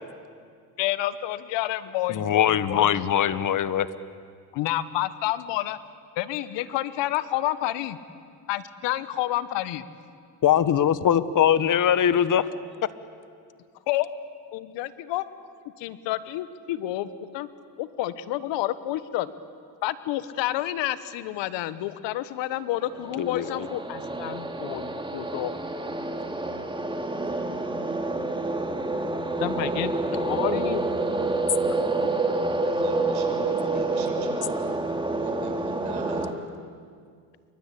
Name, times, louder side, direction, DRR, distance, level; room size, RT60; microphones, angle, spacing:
voice 1, 0.8-2.9 4.5-5.8 6.2-8.0 8.5-9.8 13.9-14.1 14.5-15.2 15.8-17.5 17.8-19.3 19.8-25.5 29.4-30.9, left 14 dB, 75° left, 14 dB, 1.4 m, -29 dB
voice 2, 2.1-3.9 10.4-12.5 23.2-23.7 33.4-33.5, left 9 dB, 45° left, 14 dB, 1.4 m, -22 dB
sound 1, 22.8-36.3, right 2 dB, 10° right, 2.3 m, -28 dB
voice 3, 32.6-34.7 35.1-36.3, right 4 dB, 60° right, 4 dB, 6.6 m, -40 dB
29.0 x 24.0 x 8.6 m, 2.1 s
supercardioid pair, 90°, 43 cm